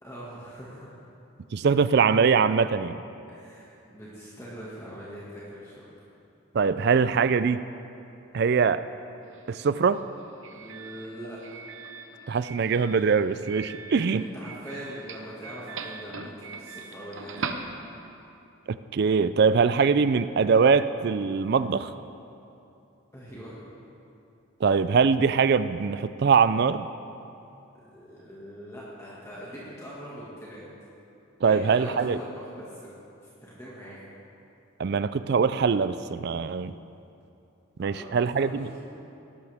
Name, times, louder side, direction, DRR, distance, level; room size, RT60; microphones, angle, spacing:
voice 1, 0.0-1.0 3.3-5.9 10.5-11.6 13.7-17.4 23.1-23.6 27.9-30.7 31.4-32.9 33.2-34.0 37.8-38.1 38.4-38.8, equal, 15° left, -8 dB, 1.9 m, -42 dB
voice 2, 1.5-3.0 6.5-7.6 8.3-8.9 9.5-10.0 12.3-14.2 18.7-21.9 24.6-26.9 31.4-32.2 34.8-36.7 37.8-38.7, right 5 dB, 50° right, 13 dB, 0.3 m, -22 dB
Doorbell, 9.2-18.3, right 4 dB, 70° right, 0.8 m, -41 dB
18.0 x 12.0 x 3.5 m, 2.7 s
head